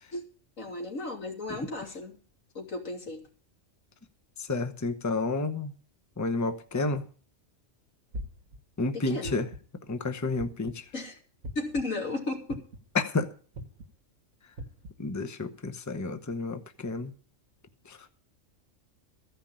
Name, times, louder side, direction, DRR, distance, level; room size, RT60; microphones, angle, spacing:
voice 1, 0.6-2.2 2.5-3.2 8.9-9.4 10.9-11.2 11.5-12.6, left 2 dB, 85° left, 3.4 m, -34 dB
voice 2, 4.5-5.7 6.2-7.0 8.8-9.5 9.9-10.8 12.9-13.3 15.0-17.1 17.9-18.0, left 3 dB, 15° left, 0.8 m, -30 dB
sound 1, 8.1-8.6 9.2-9.7 10.4-10.8 11.4-11.8 12.5-12.9 13.5-13.9 14.6-14.9, equal, 80° right, 1.6 m, -39 dB
14.5 x 5.7 x 8.7 m
omnidirectional pair, 1.3 m